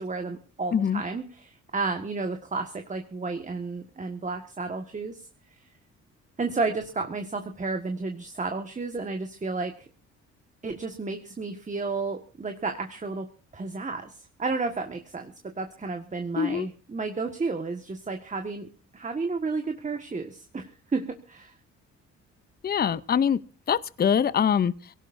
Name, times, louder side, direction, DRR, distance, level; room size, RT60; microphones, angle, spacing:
voice 1, 0.0-5.3 6.4-9.9 10.6-18.7 18.9-21.5, right 3 dB, 25° right, 1.6 m, -32 dB
voice 2, 0.7-1.0 16.4-16.7 22.6-23.4 23.7-24.9, left 7 dB, 30° left, 0.7 m, -24 dB
24.0 x 17.5 x 2.6 m
cardioid pair, 90°, 30 cm